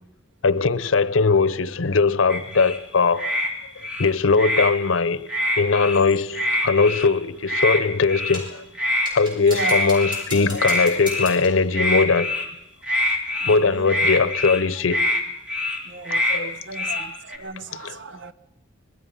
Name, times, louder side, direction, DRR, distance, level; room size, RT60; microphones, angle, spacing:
voice 1, 0.4-3.3 4.0-5.3 5.6-8.6 9.1-12.3 13.5-15.1 16.1-16.5 16.9-17.0 17.7-18.0, left 4 dB, 90° left, 0.8 m, -20 dB
sound 1, 2.3-2.8 3.2-3.5 3.8-4.7 5.3-6.0 6.3-7.1 7.5-7.8 8.1-8.4 8.8-9.1 9.5-10.2 10.6-11.4 11.7-12.5 12.8-13.6 13.9-14.6 14.9-15.2 15.5-15.8 16.1-16.4 16.7-17.4, left 1 dB, 5° right, 2.9 m, -24 dB
sound 2, 8.3-8.6 9.1-11.6, equal, 25° right, 6.3 m, -37 dB
voice 2, 9.5-9.8 13.3-13.9 15.9-18.3, right 4 dB, 65° right, 0.9 m, -35 dB
25.5 x 20.5 x 5.5 m
head